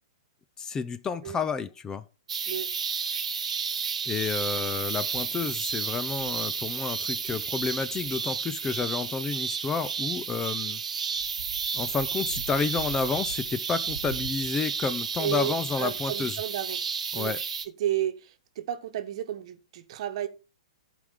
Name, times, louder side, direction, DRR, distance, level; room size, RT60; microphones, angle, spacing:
voice 1, 0.6-2.0 4.1-10.8 11.7-16.4 17.1-17.4, left 5 dB, 15° left, 0.6 m, -30 dB
sound 1, 2.3-17.6, right 6 dB, 80° right, 1.1 m, -32 dB
voice 2, 15.2-15.5 15.8-16.9 17.1-17.3 17.8-20.3, right 11 dB, 55° right, 1.2 m, -32 dB
14.0 x 5.1 x 3.7 m
hypercardioid pair, 120°, 4 cm